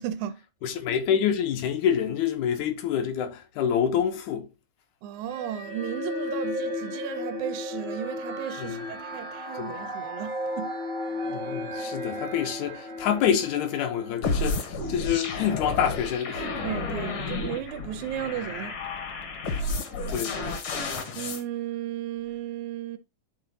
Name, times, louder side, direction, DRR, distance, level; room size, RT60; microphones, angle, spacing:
voice 1, 0.0-0.7 5.0-10.8 16.6-18.8 21.2-23.0, right 11 dB, 85° right, 2.0 m, -35 dB
voice 2, 0.6-4.5 8.6-8.9 9.6-9.7 11.3-16.5 20.1-20.4, left 8 dB, 75° left, 2.3 m, -27 dB
sound 1, 5.3-14.8, left 1 dB, 35° right, 1.0 m, -34 dB
sound 2, 14.2-21.4, left 3 dB, 60° left, 1.6 m, -31 dB
10.5 x 3.9 x 2.6 m
omnidirectional pair, 3.4 m